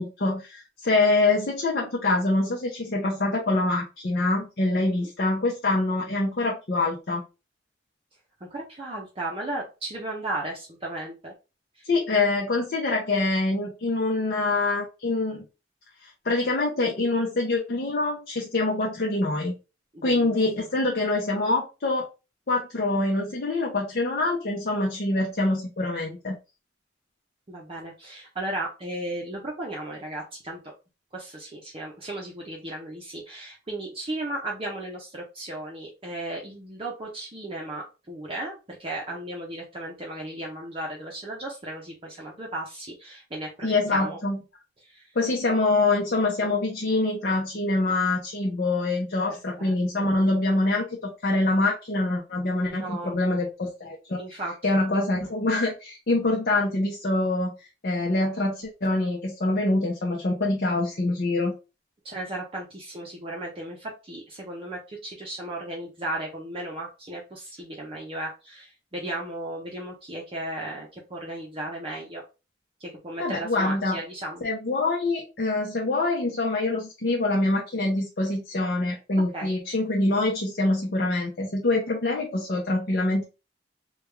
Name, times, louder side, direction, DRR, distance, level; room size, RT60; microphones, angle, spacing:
voice 1, 0.0-7.2 11.8-15.4 16.0-19.5 20.0-22.0 22.5-26.4 43.6-44.4 45.1-57.5 57.8-61.5 73.2-74.0 74.4-83.2, left 2 dB, 55° left, -2 dB, 0.7 m, -25 dB
voice 2, 8.5-11.3 11.8-11.9 19.9-20.3 20.6-20.7 27.5-30.6 31.1-44.2 44.8-45.0 49.6-49.7 50.0-50.1 52.7-53.1 54.2-54.5 62.0-72.2 72.8-74.4 79.3-79.5, right 1 dB, 30° right, -2 dB, 0.6 m, -35 dB
3.3 x 2.3 x 3.3 m, 0.29 s
head